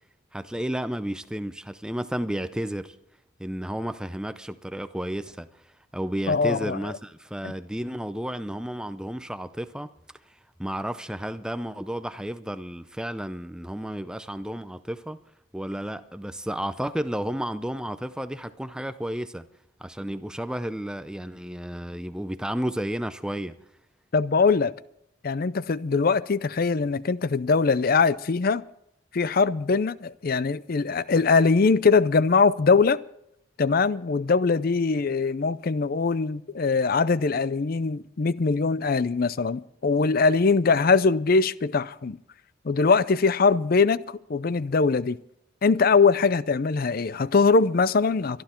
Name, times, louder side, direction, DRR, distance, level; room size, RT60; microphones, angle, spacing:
voice 1, 0.3-3.0 3.4-5.5 5.9-9.9 10.6-15.2 15.5-19.5 19.8-23.6, equal, 5° right, 0.5 m, -32 dB
voice 2, 6.3-6.8 7.4-7.5 24.1-24.7 25.2-28.6 29.1-33.0 33.6-42.2 42.6-44.0 44.3-45.2 45.6-48.4, left 4 dB, 45° left, 0.5 m, -22 dB
23.5 x 11.5 x 4.4 m
head